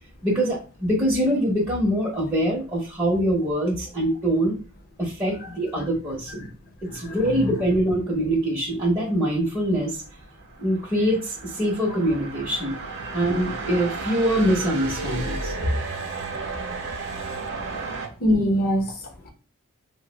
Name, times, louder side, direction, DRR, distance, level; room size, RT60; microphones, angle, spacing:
voice 1, 0.2-4.6 5.0-6.5 6.9-10.0 10.6-12.7 13.0-15.5, right 1 dB, 15° right, 0.8 m, -24 dB
voice 2, 6.9-7.5 18.2-19.3, equal, 45° left, 0.8 m, -24 dB
sound 1, 10.1-18.1, right 3 dB, 55° right, 0.6 m, -33 dB
2.5 x 2.0 x 3.8 m
head